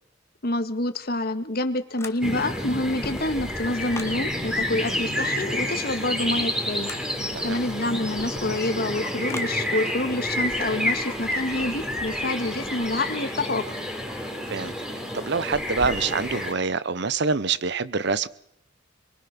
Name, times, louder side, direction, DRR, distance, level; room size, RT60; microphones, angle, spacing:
voice 1, 0.4-6.9 7.4-13.7, left 2 dB, 55° left, 8 dB, 1.8 m, -27 dB
sound 1, 2.0-2.5 2.9-4.2 6.8-7.1 9.3-9.6, left 3 dB, 15° left, 1.4 m, -39 dB
sound 2, 2.2-16.5, left 1 dB, 5° right, 3.3 m, -29 dB
voice 2, 15.1-18.3, right 4 dB, 60° right, 17 dB, 0.9 m, -26 dB
23.5 x 23.0 x 6.0 m, 0.76 s
head